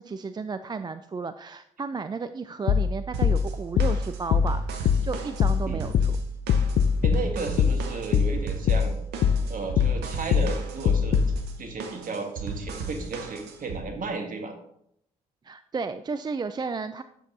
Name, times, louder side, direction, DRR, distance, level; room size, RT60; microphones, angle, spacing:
voice 1, 0.0-6.2 15.4-17.0, right 4 dB, 25° right, 11 dB, 0.4 m, -33 dB
sound 1, 2.7-11.4, left 7 dB, 55° left, 0.5 m, -24 dB
sound 2, 3.1-13.8, right 4 dB, 65° right, 1.0 m, -37 dB
voice 2, 7.0-8.9 9.5-11.2 11.6-14.5, right 4 dB, 50° right, 4 dB, 1.6 m, -33 dB
10.0 x 7.2 x 2.8 m, 0.73 s
hypercardioid pair, 45°, 18 cm